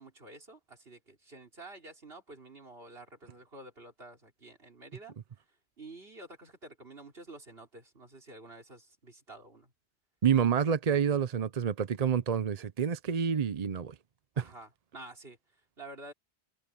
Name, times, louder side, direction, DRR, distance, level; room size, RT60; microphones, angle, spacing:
voice 1, 0.0-5.2 5.8-9.7 14.3-15.4 15.8-16.1, right 2 dB, 60° right, 4.0 m, -49 dB
voice 2, 10.2-13.9 14.4-14.5, right 7 dB, 45° right, 0.6 m, -28 dB
omnidirectional pair, 1.1 m